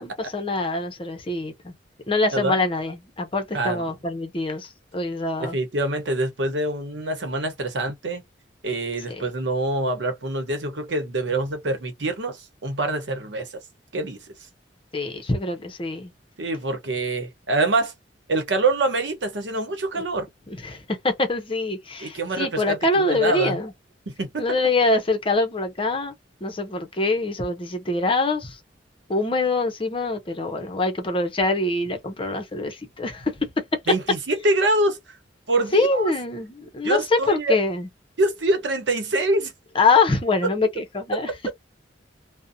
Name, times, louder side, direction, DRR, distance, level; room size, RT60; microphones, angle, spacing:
voice 1, 0.0-1.7 2.1-5.6 9.1-9.2 14.9-16.1 20.0-20.1 20.6-23.7 24.4-26.1 26.4-28.6 29.1-33.5 35.7-37.9 39.7-41.3, left 3 dB, 30° left, 0.7 m, -24 dB
voice 2, 3.5-3.9 5.4-8.2 8.6-13.5 13.9-14.2 16.4-17.9 18.3-20.3 22.0-23.6 24.1-24.4 33.9-35.0 35.5-36.1 36.8-37.6 38.2-39.5, right 2 dB, 75° right, 0.9 m, -25 dB
2.5 x 2.1 x 2.6 m
head